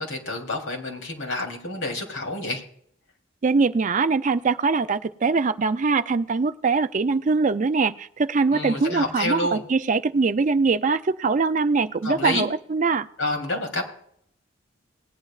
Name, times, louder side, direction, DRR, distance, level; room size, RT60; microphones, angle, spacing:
voice 1, 0.0-2.6 8.5-9.6 12.0-12.5 13.2-13.8, left 2 dB, 85° left, 2 dB, 3.3 m, -28 dB
voice 2, 3.4-13.1, right 4 dB, 40° right, 12 dB, 0.4 m, -22 dB
19.0 x 11.0 x 2.4 m, 0.67 s
head